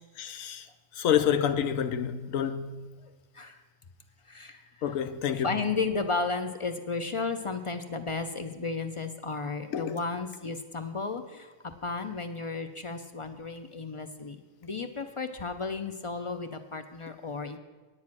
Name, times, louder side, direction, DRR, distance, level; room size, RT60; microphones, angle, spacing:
voice 1, 0.2-0.7 1.0-2.8 4.8-5.5 9.7-10.0, left 9 dB, 80° left, 1.1 m, -28 dB
voice 2, 5.4-11.5 11.8-17.6, left 4 dB, 45° left, 0.4 m, -33 dB
9.6 x 9.1 x 6.0 m
omnidirectional pair, 1.4 m